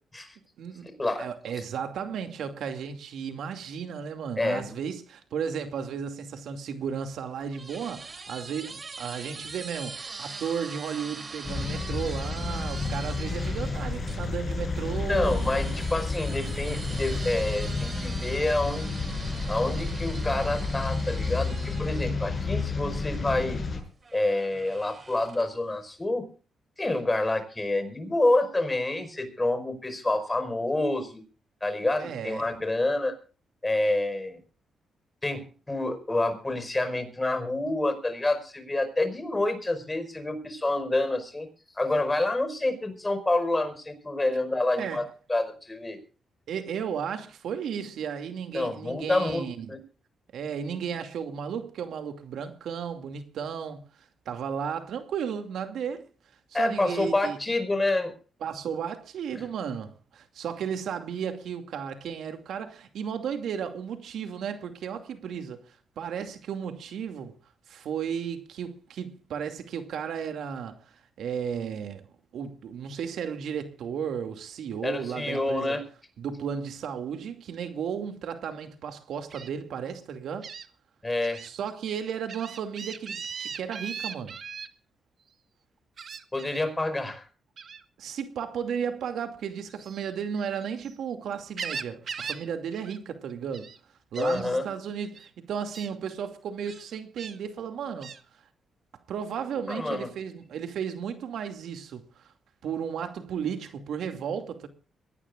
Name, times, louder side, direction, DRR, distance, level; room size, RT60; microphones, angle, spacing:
voice 1, 0.6-0.9 1.2-15.5 32.0-32.5 44.8-45.0 46.5-49.7 50.3-53.9 54.3-56.1 56.6-57.4 58.4-65.6 66.0-67.3 67.7-70.8 71.2-72.1 72.3-75.8 76.2-80.5 81.4-84.4 88.0-93.7 94.1-98.1 99.1-102.3 102.6-104.7, right 7 dB, 80° right, 2.5 m, -34 dB
voice 2, 4.4-4.8 15.1-18.9 19.5-23.6 24.1-26.3 26.8-31.2 31.6-33.1 33.6-34.4 35.2-41.5 41.8-46.0 48.5-49.8 56.5-58.1 59.3-59.5 74.8-75.8 81.0-81.4 86.3-87.2 94.2-94.7 99.7-100.1, left 2 dB, 15° left, 5.2 m, -28 dB
sound 1, 6.9-14.2 15.2-23.1 24.0-25.6, right 4 dB, 35° right, 3.0 m, -43 dB
sound 2, 11.4-23.8, left 3 dB, 30° left, 7.1 m, -31 dB
Gull seagull, 79.3-79.5 80.4-80.7 81.2-81.5 81.9-84.7 86.0-86.7 87.6-87.8 89.7-91.0 91.3-92.5 92.7-93.0 93.3-93.8 94.1-94.4 95.1-95.3 95.7-95.9 96.7-97.4 98.0-98.2, right 6 dB, 55° right, 1.5 m, -39 dB
23.0 x 18.5 x 2.5 m
cardioid pair, 120°, 0 cm